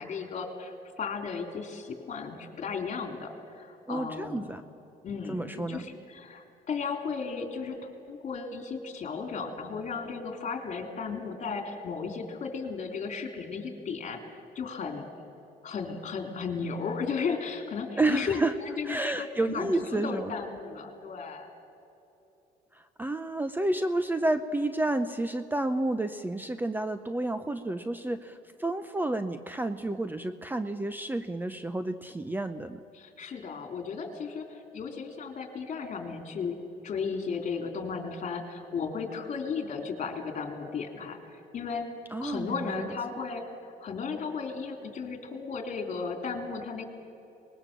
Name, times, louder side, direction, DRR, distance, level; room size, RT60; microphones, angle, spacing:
voice 1, 0.0-4.5 5.0-14.2 14.6-15.0 15.6-21.5 32.9-41.9 42.2-46.8, left 5 dB, 45° left, 4 dB, 3.5 m, -35 dB
voice 2, 3.9-4.6 5.3-5.9 18.0-18.5 18.8-20.3 22.7-32.8 42.1-42.9, right 2 dB, 10° right, 11 dB, 0.7 m, -30 dB
24.0 x 20.5 x 7.4 m, 2.9 s
cardioid pair, 110°, 17 cm